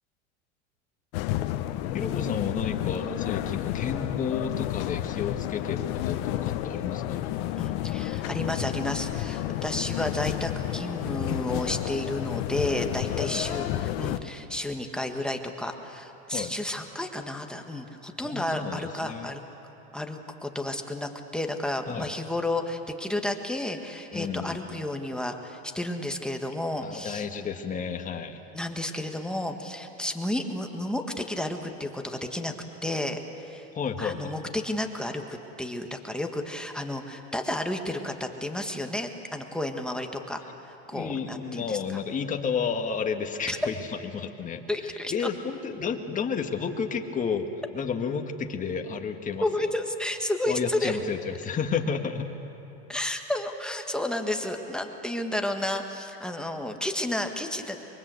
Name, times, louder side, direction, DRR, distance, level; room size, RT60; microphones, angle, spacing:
sound 1, 1.1-14.2, left 13 dB, 60° left, 1.2 m, -31 dB
voice 1, 1.9-7.3 13.2-13.7 16.3-16.5 18.2-19.4 21.9-22.1 24.1-24.8 26.8-28.4 33.7-34.3 40.9-43.8 44.1-44.7 45.1-49.7 50.5-52.3, left 6 dB, 25° left, 4 dB, 1.8 m, -32 dB
voice 2, 7.6-19.4 19.9-27.3 28.5-32.5 32.8-33.7 34.0-41.8 43.5-43.6 44.7-45.1 49.4-51.0 52.9-57.8, left 1 dB, ahead, 3 dB, 1.6 m, -32 dB
24.0 x 23.5 x 8.2 m, 2.9 s
supercardioid pair, 125°, 32 cm